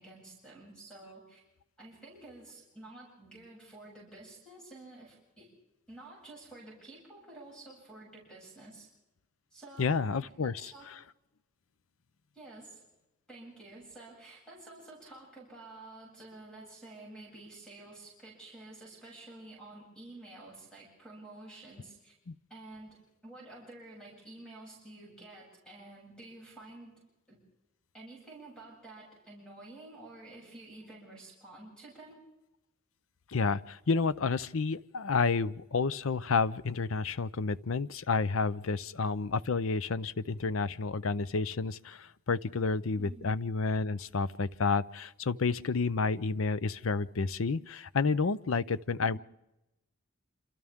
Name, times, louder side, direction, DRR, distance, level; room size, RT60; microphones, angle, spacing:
voice 1, 0.0-1.4 1.8-5.5 5.9-8.9 9.5-10.0 10.4-10.9 12.3-12.8 13.3-22.1 22.5-26.9 27.3-27.4 27.9-32.2 43.0-43.3 49.0-49.2, right 2 dB, 5° left, -4 dB, 7.4 m, -50 dB
voice 2, 9.8-10.9 22.3-22.4 33.3-49.2, left 4 dB, 75° left, 16 dB, 0.6 m, -30 dB
28.0 x 27.0 x 3.6 m, 0.96 s
head